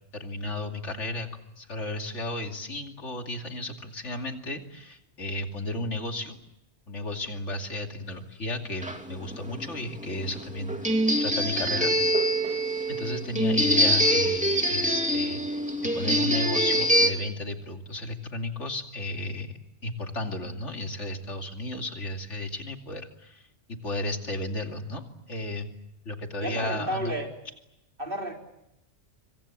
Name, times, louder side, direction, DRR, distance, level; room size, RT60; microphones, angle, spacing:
voice 1, 0.1-1.3 1.6-6.4 6.9-12.0 12.9-15.6 15.9-25.7 26.0-27.2, left 2 dB, 80° left, 4 dB, 3.0 m, -34 dB
sound 1, 8.8-17.1, equal, 5° right, 2.6 m, -25 dB
voice 2, 26.4-27.3 28.0-28.3, right 1 dB, 50° right, 1 dB, 4.5 m, -31 dB
25.5 x 25.0 x 7.5 m, 0.84 s
omnidirectional pair, 1.2 m